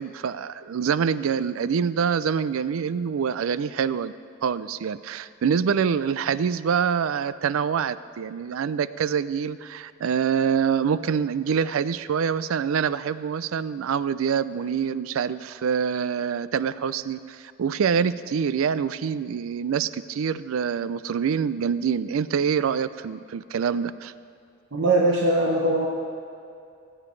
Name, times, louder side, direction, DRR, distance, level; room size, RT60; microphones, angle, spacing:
voice 1, 0.0-4.1 4.4-24.1, right 7 dB, 85° right, 16 dB, 0.4 m, -25 dB
voice 2, 24.7-25.9, right 2 dB, 65° right, -2 dB, 1.0 m, -21 dB
19.5 x 8.9 x 3.2 m, 2.5 s
head